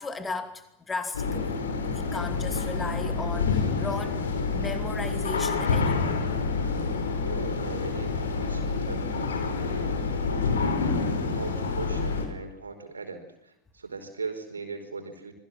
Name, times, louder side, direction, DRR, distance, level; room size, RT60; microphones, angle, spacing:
voice 1, 0.0-1.6 1.8-6.2, left 4 dB, 15° left, 9 dB, 2.7 m, -36 dB
sound 1, 1.1-12.3, left 4 dB, 65° left, 5.0 m, -28 dB
voice 2, 7.2-10.8 11.3-15.3, right 4 dB, 75° right, 6 dB, 4.9 m, -39 dB
27.5 x 21.5 x 7.6 m, 0.81 s
figure-of-eight pair, 90°, 0 cm